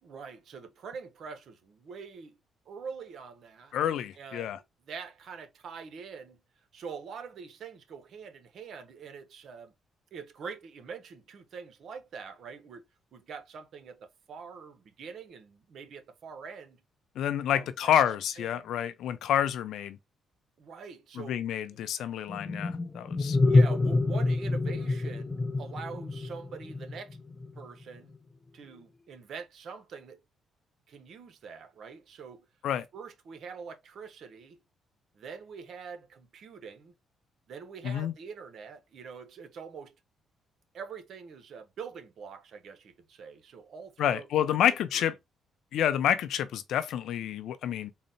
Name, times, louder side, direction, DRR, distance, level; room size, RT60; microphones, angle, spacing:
voice 1, 0.0-2.4 2.7-3.7 4.2-6.4 6.7-9.7 10.1-16.8 17.5-18.0 18.4-18.7 20.6-21.4 23.4-27.2 27.6-28.2 28.5-30.2 30.9-32.5 32.9-34.6 35.1-36.9 37.5-40.0 40.7-45.2, right 5 dB, 65° right, 0.8 m, -44 dB
voice 2, 3.7-4.6 17.2-20.0 21.2-23.4 32.6-32.9 37.8-38.1 44.0-45.1 45.7-47.9, left 10 dB, 75° left, 0.5 m, -28 dB
sound 1, 22.3-27.6, left 2 dB, 20° left, 0.4 m, -27 dB
3.9 x 2.0 x 4.0 m
cardioid pair, 90°, 0 cm